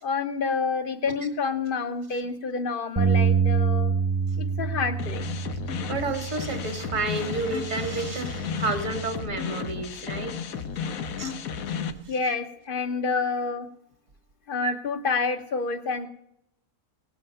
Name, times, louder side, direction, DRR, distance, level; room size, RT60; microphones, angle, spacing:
voice 1, 0.0-3.9 4.4-5.3 12.1-13.6 14.5-16.1, left 4 dB, 45° left, 10 dB, 1.0 m, -28 dB
Bass guitar, 3.0-9.2, right 6 dB, 20° right, 0.4 m, -27 dB
sound 1, 5.0-11.9, left 6 dB, 85° left, 1.3 m, -33 dB
voice 2, 5.9-10.6 11.2-11.3 11.8-12.4 13.1-13.3 14.6-14.7, right 3 dB, 65° right, 6 dB, 1.9 m, -31 dB
18.0 x 7.8 x 5.4 m, 0.79 s
omnidirectional pair, 1.5 m